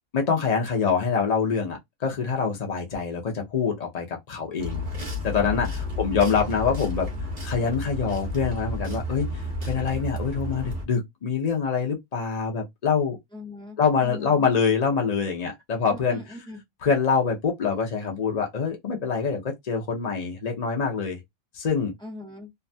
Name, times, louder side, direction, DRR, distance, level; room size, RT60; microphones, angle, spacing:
voice 1, 0.1-4.8 5.2-7.1 7.4-9.3 9.7-13.2 13.8-16.2 16.8-21.2 21.5-21.9, left 6 dB, 65° left, 0.4 m, -25 dB
sound 1, 4.6-10.8, left 2 dB, 30° right, 0.9 m, -31 dB
voice 2, 5.8-6.6 7.0-7.2 13.3-14.5 15.9-16.6 22.0-22.5, left 1 dB, 5° left, 0.5 m, -42 dB
2.8 x 2.2 x 2.6 m
omnidirectional pair, 1.7 m